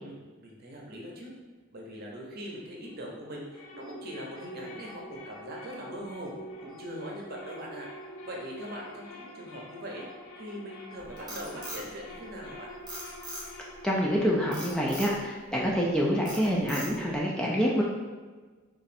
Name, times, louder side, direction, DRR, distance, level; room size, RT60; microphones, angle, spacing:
voice 1, 0.0-1.3 1.7-6.3 6.6-7.9 8.2-12.7, equal, 50° right, -2 dB, 0.8 m, -41 dB
sound 1, 2.8-14.8, equal, 75° left, 0.5 m, -46 dB
Frog, 11.0-12.5 12.9-13.7 14.5-15.2 15.7-15.9 16.3-17.2, right 1 dB, 20° right, 1.1 m, -40 dB
voice 2, 13.8-17.8, equal, 5° left, -4 dB, 0.3 m, -26 dB
3.1 x 2.5 x 4.1 m, 1.4 s
head